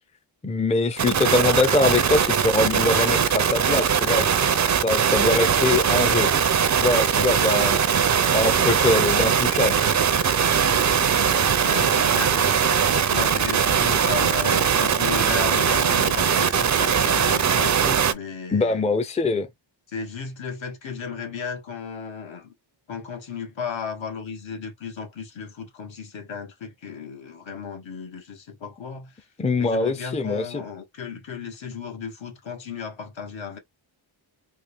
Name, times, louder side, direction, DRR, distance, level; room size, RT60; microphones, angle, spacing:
voice 1, 0.4-6.3 6.8-7.8 8.3-9.8 18.5-19.5 29.4-30.6, left 3 dB, 15° left, 0.5 m, -23 dB
sound 1, 1.0-18.1, right 7 dB, 40° right, 0.5 m, -21 dB
voice 2, 11.6-12.6 13.1-18.8 19.9-22.5 22.9-29.3 29.6-33.6, left 5 dB, 70° left, 1.5 m, -34 dB
3.7 x 2.3 x 3.4 m
wide cardioid pair, 100°, 47 cm